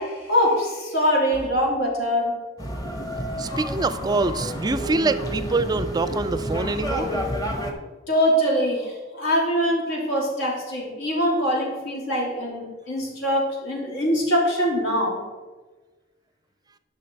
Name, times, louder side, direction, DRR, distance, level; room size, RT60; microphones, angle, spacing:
voice 1, 0.0-2.4 8.1-15.2, equal, 80° left, -3 dB, 3.1 m, -23 dB
sound 1, 2.6-7.7, equal, 20° left, 1.0 m, -29 dB
voice 2, 3.4-7.2, right 3 dB, 20° right, 13 dB, 0.4 m, -25 dB
11.0 x 5.8 x 4.5 m, 1.3 s
head